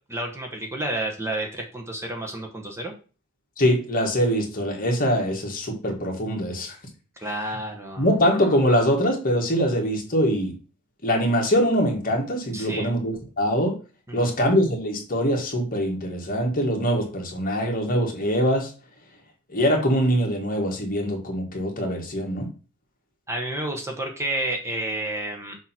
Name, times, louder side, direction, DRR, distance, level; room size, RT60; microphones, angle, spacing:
voice 1, 0.1-2.9 7.2-8.1 12.5-12.9 14.1-14.3 23.3-25.6, right 1 dB, 15° right, 2 dB, 1.0 m, -30 dB
voice 2, 3.6-6.8 8.0-10.5 11.0-13.8 14.1-18.7 19.5-22.5, equal, 40° left, 1 dB, 1.7 m, -23 dB
6.4 x 2.9 x 5.7 m, 0.35 s
head